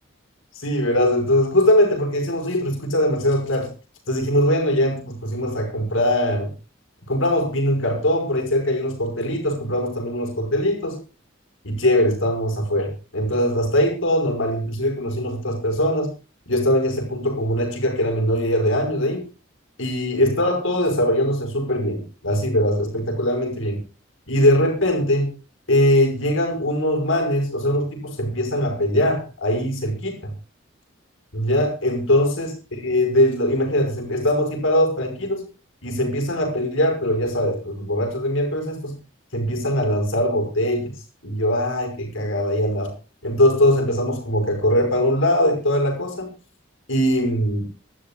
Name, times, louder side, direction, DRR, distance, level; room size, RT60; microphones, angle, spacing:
voice 1, 0.5-3.7 4.1-6.5 7.1-11.0 11.6-16.1 16.5-19.3 19.8-23.8 24.3-25.3 25.7-30.3 31.3-35.5 35.8-38.9 39.3-41.0 41.2-42.9 43.2-46.3 46.9-47.7, left 1 dB, 80° left, 3 dB, 5.3 m, -21 dB
26.0 x 12.5 x 2.3 m, 0.31 s
head